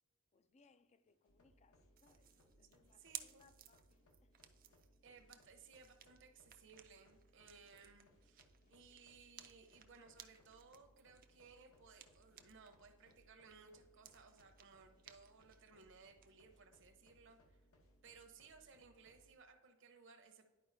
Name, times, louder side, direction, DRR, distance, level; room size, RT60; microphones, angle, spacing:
voice 1, 0.3-4.3, left 4 dB, 30° left, 0.4 m, -73 dB
sound 1, 1.0-18.6, left 1 dB, 65° left, 1.9 m, -83 dB
sound 2, 1.3-19.3, equal, 80° left, 1.1 m, -71 dB
sound 3, 2.0-12.8 13.1-16.3, right 11 dB, 40° right, 0.4 m, -59 dB
voice 2, 2.7-3.4 5.0-17.6 18.0-20.5, right 5 dB, 55° right, 0.8 m, -62 dB
11.0 x 4.6 x 2.7 m
head